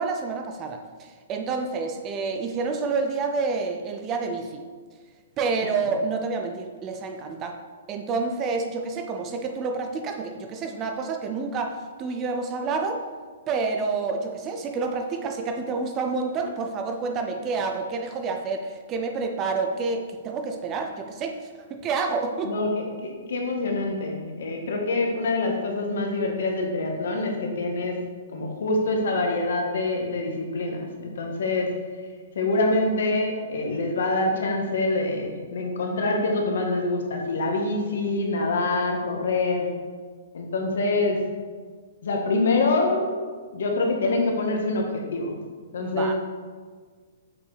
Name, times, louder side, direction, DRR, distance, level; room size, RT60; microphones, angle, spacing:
voice 1, 0.0-4.6 5.4-7.6 7.9-13.0 13.5-22.5 45.8-46.1, right 4 dB, 15° right, 4 dB, 0.4 m, -28 dB
voice 2, 22.9-28.0 28.3-31.7 32.3-39.7 40.3-41.2 42.0-43.1 43.5-45.3 45.7-46.1, left 2 dB, 65° left, 1 dB, 1.5 m, -25 dB
7.0 x 4.5 x 5.0 m, 1.5 s
hypercardioid pair, 175°, 0 cm